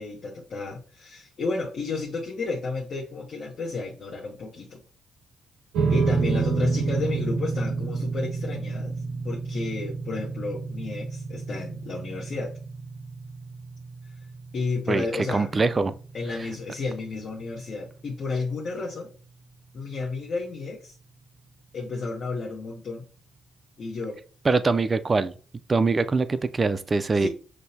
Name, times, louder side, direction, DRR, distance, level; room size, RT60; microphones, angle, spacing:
voice 1, 0.0-4.8 5.9-9.0 9.2-12.5 14.5-15.7 16.1-19.1 19.7-21.0 21.7-23.1 23.8-24.2 27.1-27.3, left 3 dB, 55° left, 0.9 m, -32 dB
sound 1, 5.7-18.3, right 4 dB, 85° right, 0.7 m, -30 dB
voice 2, 14.9-15.9 24.4-25.3 25.7-27.3, right 3 dB, 30° right, 0.3 m, -23 dB
6.2 x 2.1 x 2.7 m
cardioid pair, 90°, 0 cm